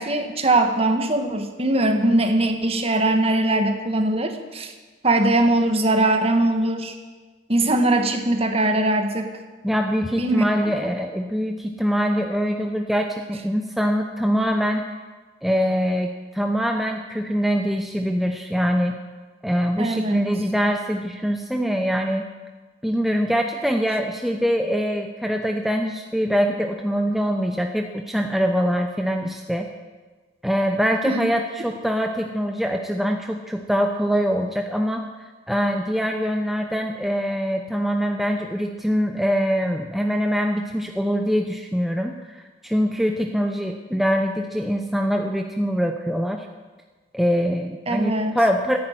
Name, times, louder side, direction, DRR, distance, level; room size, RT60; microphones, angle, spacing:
voice 1, 0.0-4.7 5.0-7.0 7.5-9.3 10.2-10.7 19.8-20.2 31.0-31.3 47.9-48.4, right 2 dB, 30° right, 6 dB, 1.5 m, -21 dB
voice 2, 9.6-14.8 15.4-19.0 19.4-22.2 22.8-29.7 30.4-35.0 35.5-46.5 47.1-48.8, equal, ahead, 3 dB, 0.7 m, -23 dB
14.5 x 10.5 x 9.3 m, 1.3 s
head